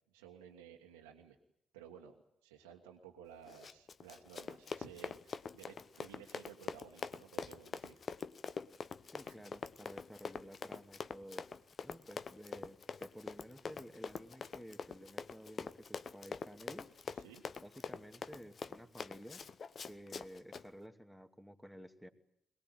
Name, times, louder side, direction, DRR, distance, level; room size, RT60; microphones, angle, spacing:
voice 1, 0.1-1.4 1.7-8.0 9.2-9.4 17.1-17.4, right 8 dB, 85° right, 0 dB, 1.5 m, -56 dB
Run, 3.5-20.7, left 5 dB, 50° left, 0.9 m, -45 dB
voice 2, 9.1-11.5 11.8-16.9 17.6-19.4 19.9-22.1, equal, 5° left, 7 dB, 2.6 m, -53 dB
22.0 x 20.0 x 9.4 m, 0.74 s
hypercardioid pair, 40°, 0 cm